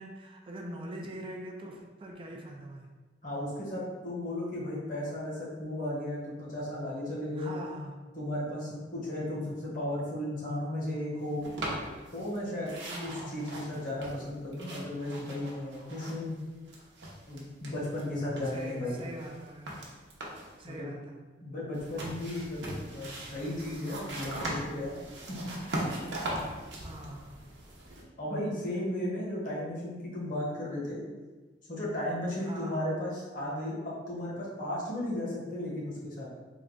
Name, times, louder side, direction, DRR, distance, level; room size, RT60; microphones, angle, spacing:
voice 1, 0.0-2.9 7.4-8.0 12.9-13.4 18.5-19.8 20.6-21.2 26.8-27.4 32.5-32.8, right 1 dB, 30° right, 1 dB, 0.4 m, -43 dB
voice 2, 3.2-7.6 8.2-11.4 12.1-16.4 17.3-19.0 20.6-21.0 21.4-25.0 25.3-25.5 28.2-31.0 31.7-36.3, left 1 dB, 50° left, -6 dB, 1.1 m, -35 dB
sound 1, 11.4-12.4 12.6-16.4 16.7-18.0 18.4-20.6 21.7-28.0, right 1 dB, 80° right, 0.8 m, -40 dB
3.6 x 2.2 x 3.6 m, 1.3 s
head